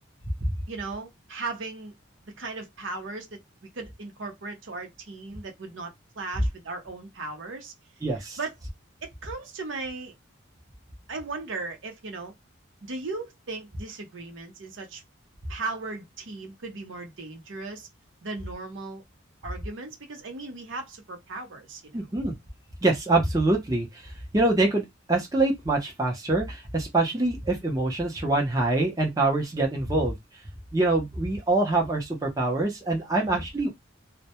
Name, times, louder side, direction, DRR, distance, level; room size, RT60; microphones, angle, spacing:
voice 1, 0.7-1.9 2.4-3.4 3.8-7.7 8.4-8.5 9.0-10.1 11.1-12.3 12.8-15.0 15.5-17.9 18.2-19.0 19.4-22.1 33.2-33.4, right 3 dB, 70° right, 0.6 m, -37 dB
voice 2, 8.0-8.4 21.9-22.4 22.8-30.2 30.7-33.7, right 2 dB, 15° right, 0.6 m, -25 dB
2.1 x 2.1 x 2.8 m
head